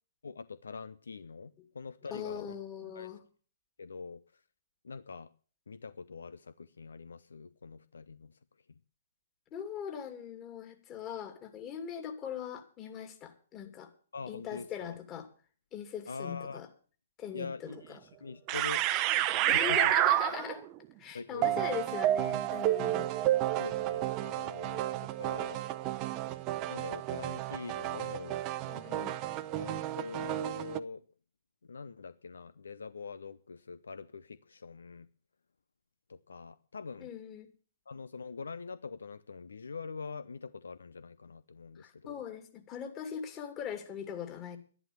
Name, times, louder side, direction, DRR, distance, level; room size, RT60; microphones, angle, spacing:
voice 1, 0.2-2.4 3.0-3.1 3.8-4.2 4.8-5.3 5.7-8.3 14.1-15.0 16.1-16.6 17.3-18.8 19.3-19.9 21.1-21.6 23.6-25.6 26.7-28.4 29.5-31.0 31.7-35.1 36.1-37.1 37.9-42.2, left 4 dB, 70° left, 0.7 m, -44 dB
voice 2, 2.1-3.2 9.5-13.9 14.3-15.3 15.7-16.7 17.2-18.0 19.5-20.7 21.0-23.3 28.6-29.2 37.0-37.5 41.8-44.6, left 8 dB, 25° left, 2.8 m, -41 dB
sound 1, 17.7-17.8 18.5-20.7 21.4-30.8, right 14 dB, 30° right, 0.8 m, -31 dB
12.0 x 11.0 x 6.8 m
figure-of-eight pair, 120°, 0 cm